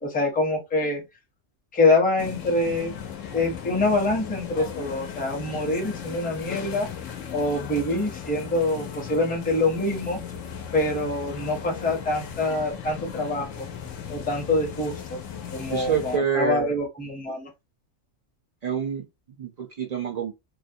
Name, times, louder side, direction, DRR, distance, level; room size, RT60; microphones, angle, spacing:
voice 1, 0.0-1.0 1.7-2.9 3.3-6.9 7.3-10.2 10.7-13.7 14.1-14.9 15.5-17.5, left 2 dB, 10° left, 0.4 m, -25 dB
sound 1, 2.2-16.2, left 8 dB, 90° left, 1.0 m, -37 dB
voice 2, 15.7-16.7 18.6-20.3, right 7 dB, 80° right, 0.3 m, -27 dB
2.6 x 2.1 x 2.6 m
omnidirectional pair, 1.3 m